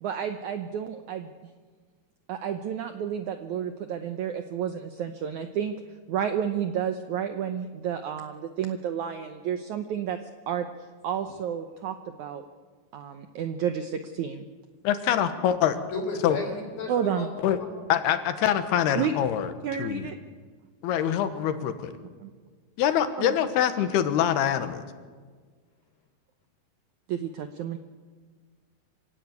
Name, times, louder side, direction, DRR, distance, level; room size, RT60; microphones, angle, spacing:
voice 1, 0.0-1.3 2.3-5.7 6.1-10.2 10.5-10.7 11.0-12.4 12.9-14.4 16.9-17.3 18.9-19.1 19.6-20.1 22.2-22.3 23.2-23.3 27.1-27.8, right 8 dB, 80° right, 8 dB, 1.7 m, -31 dB
voice 2, 14.8-15.8 16.2-16.4 17.4-17.6 17.9-19.5 19.8-20.1 20.8-21.9 22.8-24.8, left 10 dB, 80° left, 9 dB, 3.3 m, -24 dB
voice 3, 15.9-17.3 17.6-17.7, left 4 dB, 65° left, 2 dB, 5.3 m, -33 dB
25.5 x 16.5 x 9.5 m, 1.5 s
omnidirectional pair, 4.6 m